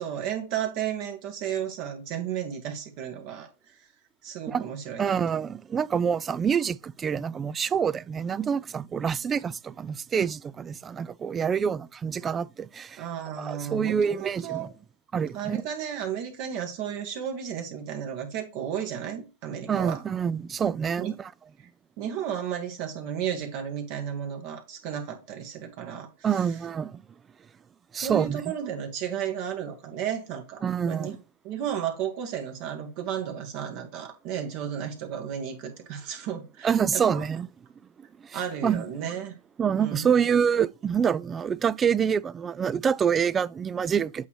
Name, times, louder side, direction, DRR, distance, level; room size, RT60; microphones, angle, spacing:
voice 1, 0.0-3.5 4.2-5.2 13.0-14.7 15.3-20.0 21.0-21.1 22.0-26.1 27.9-31.2 31.4-37.2 38.3-39.3 39.8-40.0, right 9 dB, 50° right, 1.6 m, -33 dB
voice 2, 5.0-13.0 13.4-14.7 15.1-15.6 19.7-21.3 26.2-27.0 27.9-28.5 30.6-31.2 36.6-37.5 38.2-38.8 39.6-44.3, right 7 dB, 20° right, 0.3 m, -26 dB
8.1 x 2.9 x 4.7 m
hypercardioid pair, 130°, 0 cm